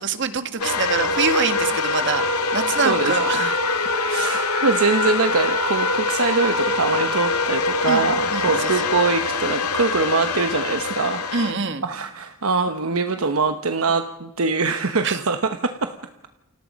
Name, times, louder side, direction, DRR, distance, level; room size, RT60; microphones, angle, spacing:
voice 1, 0.0-3.5 7.9-8.9 11.3-11.8 15.0-15.2, right 4 dB, 55° right, 8 dB, 1.9 m, -25 dB
sound 1, 0.6-11.5, left 3 dB, 85° left, 2.2 m, -24 dB
voice 2, 2.8-3.5 4.1-11.2 11.8-15.9, right 4 dB, 70° right, 7 dB, 1.1 m, -23 dB
29.0 x 25.5 x 5.3 m, 1.0 s
head